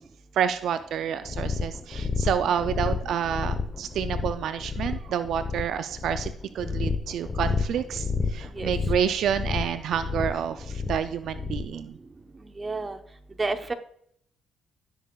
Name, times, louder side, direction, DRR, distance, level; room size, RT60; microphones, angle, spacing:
voice 1, 0.3-12.0, right 8 dB, 75° right, 11 dB, 0.4 m, -29 dB
sound 1, 1.3-11.8, left 4 dB, 25° left, 0.9 m, -30 dB
voice 2, 12.6-13.0 13.4-13.7, right 3 dB, 25° right, 7 dB, 0.8 m, -29 dB
16.0 x 6.6 x 2.3 m, 0.69 s
cardioid pair, 90°, 0 cm